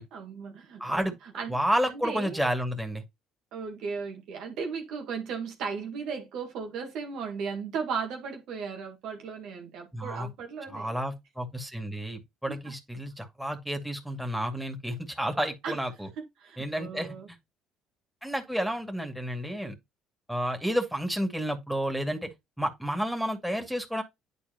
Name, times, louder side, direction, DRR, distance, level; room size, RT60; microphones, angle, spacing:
voice 1, 0.1-1.0 1.3-1.6 1.9-2.4 3.5-10.9 12.5-12.6 15.6-15.8 16.2-17.3, right 5 dB, 70° right, 1.7 m, -36 dB
voice 2, 0.8-1.2 1.5-3.0 9.9-10.3 10.7-16.1 16.6-17.4 18.2-19.7 20.3-22.3 22.6-24.0, equal, ahead, 2.3 m, -31 dB
10.0 x 4.3 x 2.9 m
hypercardioid pair, 60°, 0 cm